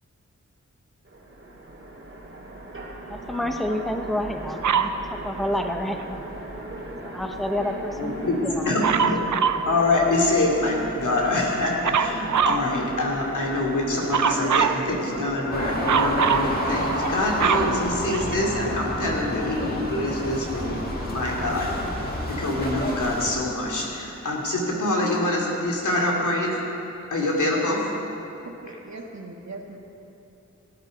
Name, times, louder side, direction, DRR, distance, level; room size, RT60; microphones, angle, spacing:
Train, 1.0-16.4, right 1 dB, 45° right, 2.4 m, -37 dB
voice 1, 3.1-6.3 7.0-8.9, left 1 dB, ahead, 5 dB, 0.9 m, -29 dB
Dog, 4.6-5.0 8.8-9.7 11.8-12.7 14.1-14.8 15.9-16.5 17.0-18.6 19.3-19.4, right 7 dB, 80° right, 0.6 m, -23 dB
voice 2, 8.0-9.2 9.6-26.6 27.1-27.9, left 2 dB, 80° left, -2 dB, 2.6 m, -25 dB
sound 1, 15.5-23.3, left 1 dB, 30° left, 2.2 m, -29 dB
voice 3, 28.4-29.8, right 3 dB, 65° right, 1 dB, 1.6 m, -40 dB
17.5 x 9.7 x 5.3 m, 2.9 s
wide cardioid pair, 75°, 30 cm